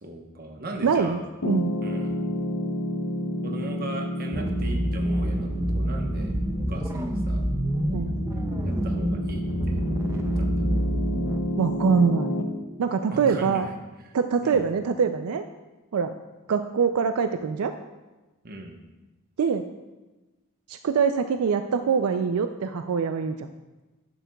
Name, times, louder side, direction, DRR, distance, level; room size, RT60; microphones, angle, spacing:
voice 1, 0.0-1.3 1.8-2.3 3.4-6.4 6.7-7.5 8.6-9.8 10.1-10.8 13.1-13.7 14.0-14.7 18.4-18.8, right 1 dB, 40° right, 3 dB, 1.0 m, -39 dB
voice 2, 0.8-1.7 7.9-8.2 11.6-12.4 12.8-13.7 14.1-15.4 15.9-16.1 16.5-17.7 19.4-19.7 20.7-23.4, right 5 dB, 80° right, 8 dB, 0.4 m, -24 dB
Piano, 1.4-12.4, left 1 dB, 70° left, 0.8 m, -30 dB
sound 1, 4.3-11.4, right 1 dB, 15° right, 0.4 m, -27 dB
11.0 x 10.0 x 2.3 m, 1.1 s
head